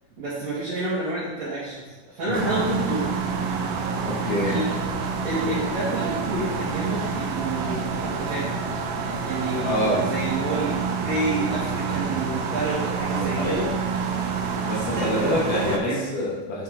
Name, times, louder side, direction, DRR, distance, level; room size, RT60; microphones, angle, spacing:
voice 1, 0.2-3.1 4.4-4.9 5.2-8.5 9.2-13.7 14.8-16.1, right 2 dB, 55° right, -12 dB, 3.1 m, -29 dB
sound 1, 2.3-15.8, right 5 dB, 75° right, 1.9 m, -28 dB
voice 2, 4.0-4.5 9.6-10.0 13.1-13.7 14.6-16.6, left 1 dB, 70° left, -5 dB, 2.9 m, -26 dB
8.2 x 5.2 x 3.8 m, 1.3 s
omnidirectional pair, 3.9 m